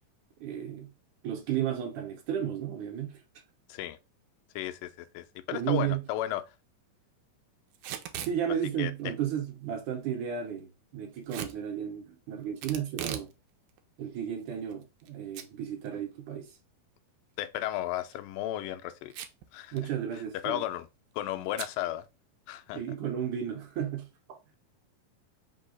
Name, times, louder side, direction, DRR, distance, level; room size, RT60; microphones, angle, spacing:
voice 1, 0.4-0.9 1.2-3.2 5.5-6.0 8.2-13.3 14.0-16.6 19.7-20.6 22.7-24.4, right 9 dB, 70° right, 2.1 m, -33 dB
voice 2, 4.6-6.4 8.8-9.1 17.4-19.1 19.5-19.8 20.4-20.9 21.1-22.1 22.5-22.8, left 13 dB, 90° left, 2.2 m, -34 dB
Packing tape duct tape / Tearing, 7.7-8.4 11.3-11.6 12.6-13.3 13.7-13.8 14.5-15.1 15.4-15.5 15.9-16.0 17.9-18.2 19.1-19.5 19.8-19.9 20.1-20.5 21.6-21.8, right 11 dB, 90° right, 2.2 m, -38 dB
5.4 x 2.2 x 3.8 m
omnidirectional pair, 3.8 m